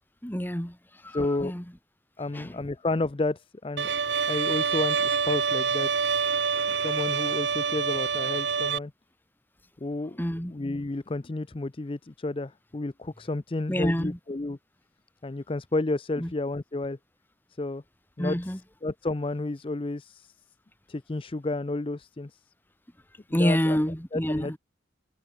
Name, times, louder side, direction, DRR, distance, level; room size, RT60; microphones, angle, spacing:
voice 1, 0.2-1.6 2.3-2.6 10.2-10.5 13.7-14.2 16.2-16.3 18.2-18.6 23.3-24.6, equal, 10° left, 2.7 m, -28 dB
voice 2, 1.1-1.5 2.2-3.9 4.3-6.0 6.7-8.9 9.8-10.2 10.5-14.6 15.2-17.0 17.6-17.8 18.2-18.4 18.8-20.3 20.9-22.3 23.4-23.8 24.1-24.6, left 2 dB, 30° left, 0.5 m, -31 dB
Bowed string instrument, 3.8-8.8, right 6 dB, 80° right, 1.1 m, -26 dB
head